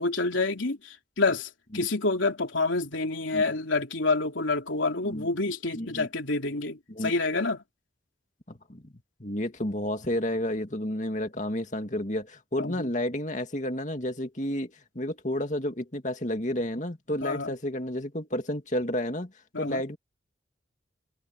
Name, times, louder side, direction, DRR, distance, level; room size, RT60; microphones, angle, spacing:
voice 1, 0.0-7.6 12.6-12.9 17.2-17.5 19.5-19.8, left 3 dB, 90° left, 3.3 m, -28 dB
voice 2, 5.7-6.1 6.9-7.1 8.5-8.9 9.2-19.3 19.6-20.0, left 1 dB, 40° left, 2.4 m, -31 dB
head